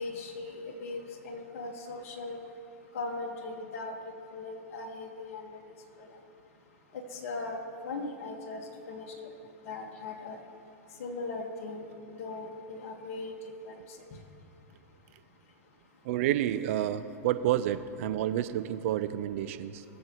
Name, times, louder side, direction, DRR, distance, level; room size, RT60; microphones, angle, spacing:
voice 1, 0.0-2.4 2.9-4.0 4.3-5.6 6.0-6.1 7.2-7.6 7.9-8.6 8.9-9.1 9.7-10.4 11.0-11.8 12.2-13.3 13.6-13.8, left 3 dB, 60° left, 1 dB, 1.7 m, -38 dB
voice 2, 16.0-19.8, right 12 dB, 60° right, 12 dB, 0.7 m, -29 dB
22.0 x 7.4 x 3.1 m, 2.8 s
hypercardioid pair, 115°, 8 cm